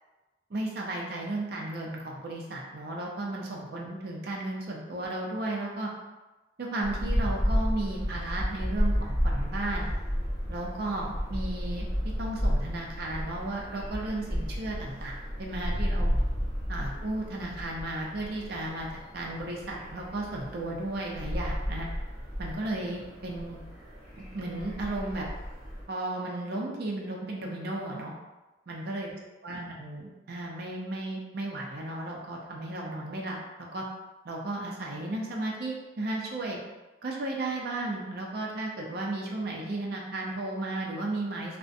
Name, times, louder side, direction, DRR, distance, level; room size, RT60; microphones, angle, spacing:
voice 1, 0.5-5.9 6.6-9.9 10.5-11.9 12.2-16.1 16.7-18.9 19.1-21.9 22.4-23.6 24.2-25.3 25.9-28.1 28.7-29.1 29.4-33.4 33.7-33.8 34.2-36.6 37.0-41.6, right 2 dB, 55° right, -2 dB, 0.5 m, -34 dB
sound 1, 6.8-25.8, equal, 15° left, 1.1 m, -32 dB
2.4 x 2.1 x 2.5 m, 1.1 s
head